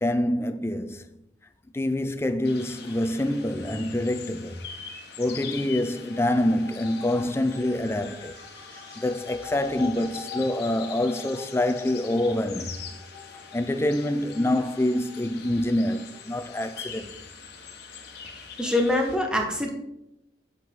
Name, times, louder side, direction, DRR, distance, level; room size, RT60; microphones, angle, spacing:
voice 1, 0.0-1.1 1.7-4.6 5.2-8.4 9.0-12.8 13.5-17.2, left 1 dB, 15° left, 0.4 m, -26 dB
sound 1, 2.4-19.2, left 6 dB, 60° left, 1.3 m, -43 dB
sound 2, 5.4-16.7, left 6 dB, 65° right, 2.8 m, -45 dB
voice 2, 18.6-19.7, left 1 dB, 5° right, 1.2 m, -24 dB
7.8 x 7.3 x 3.8 m
head